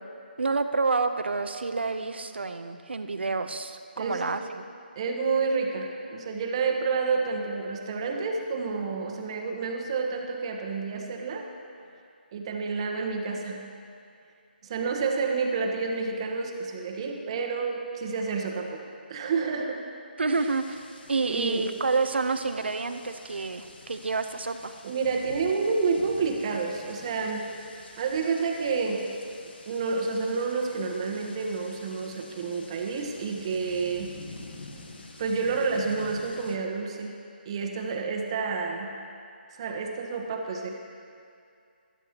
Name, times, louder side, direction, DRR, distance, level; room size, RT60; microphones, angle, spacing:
voice 1, 0.4-4.6 20.2-20.8 21.1-24.7, right 4 dB, 85° right, 9 dB, 0.7 m, -28 dB
voice 2, 4.0-4.3 5.0-11.5 12.3-13.7 14.6-18.8 19.1-19.9 20.4-20.5 21.2-21.7 24.8-27.5 28.0-29.1 29.7-34.2 35.2-37.2 37.4-39.0 39.5-40.7, right 4 dB, 30° right, 2 dB, 1.1 m, -29 dB
sound 1, 20.3-36.6, left 2 dB, 75° left, 1.3 m, -48 dB
16.0 x 12.5 x 3.0 m, 2.4 s
hypercardioid pair, 160°, 6 cm